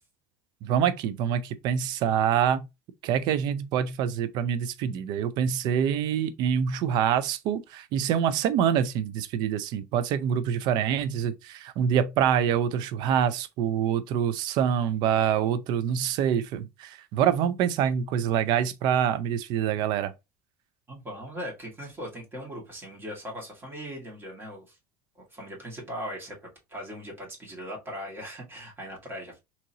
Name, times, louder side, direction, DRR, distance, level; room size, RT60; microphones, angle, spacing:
voice 1, 0.6-2.7 3.0-20.1, right 8 dB, 60° right, 0.4 m, -26 dB
voice 2, 20.9-24.8 25.3-29.4, equal, 25° right, 2.0 m, -39 dB
3.7 x 2.9 x 2.8 m
supercardioid pair, 95°, 8 cm